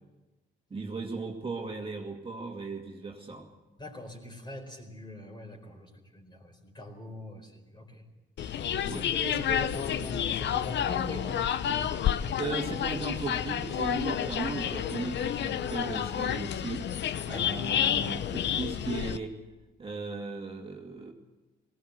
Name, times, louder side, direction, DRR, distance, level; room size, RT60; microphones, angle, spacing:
voice 1, 0.7-3.5 8.9-9.0 12.4-16.9 17.3-19.4 19.8-21.1, right 4 dB, 25° right, 1 dB, 2.3 m, -36 dB
voice 2, 3.8-8.0 8.9-11.8 17.3-17.6, left 1 dB, 20° left, 3 dB, 4.4 m, -41 dB
sound 1, 8.4-19.2, left 9 dB, 65° left, 0.8 m, -30 dB
18.5 x 17.5 x 8.1 m, 1.1 s
cardioid pair, 90°, 20 cm